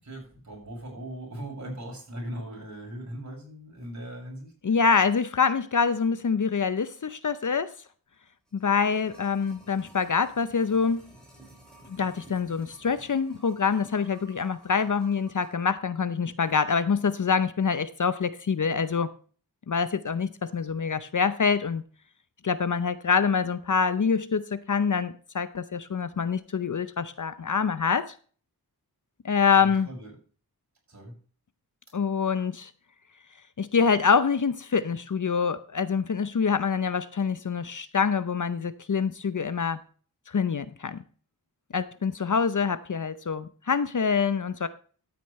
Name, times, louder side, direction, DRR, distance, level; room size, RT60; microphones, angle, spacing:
voice 1, 0.0-4.5 29.5-30.1 30.9-31.1, right 1 dB, 45° right, 6.2 m, -39 dB
voice 2, 4.6-7.7 8.5-11.1 11.9-19.1 19.7-21.8 22.4-28.1 29.2-29.9 31.9-32.7 33.6-39.8 40.3-41.0 41.7-44.7, left 5 dB, 50° left, 0.7 m, -25 dB
sound 1, 8.2-15.7 16.0-16.1, right 2 dB, ahead, 5.6 m, -54 dB
13.5 x 9.2 x 3.2 m
wide cardioid pair, 95°, 39 cm